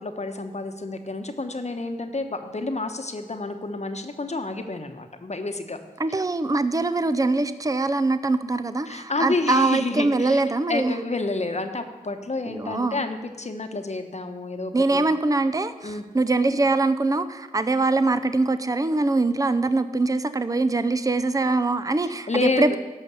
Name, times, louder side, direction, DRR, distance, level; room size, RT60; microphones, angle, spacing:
voice 1, 0.0-5.8 8.9-10.4 10.7-15.1 15.8-16.0 22.3-22.8, left 3 dB, 45° left, 7 dB, 1.0 m, -29 dB
voice 2, 6.0-10.9 12.5-13.0 14.7-22.8, right 3 dB, 20° right, 12 dB, 0.6 m, -23 dB
12.0 x 5.6 x 6.9 m, 1.3 s
cardioid pair, 40°, 16 cm